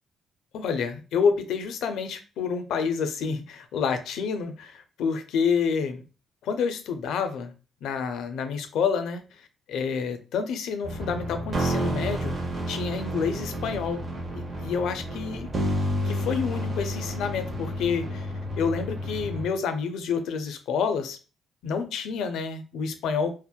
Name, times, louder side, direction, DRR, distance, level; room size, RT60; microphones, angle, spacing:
voice 1, 0.5-6.0 6.4-7.5 7.8-9.2 9.7-12.3 12.7-14.0 14.3-15.5 16.0-21.2 21.6-23.3, left 6 dB, 80° left, 8 dB, 0.4 m, -28 dB
sound 1, 10.8-19.4, equal, 40° right, 0.7 m, -30 dB
2.8 x 2.0 x 2.2 m, 0.34 s
cardioid pair, 90°, 0 cm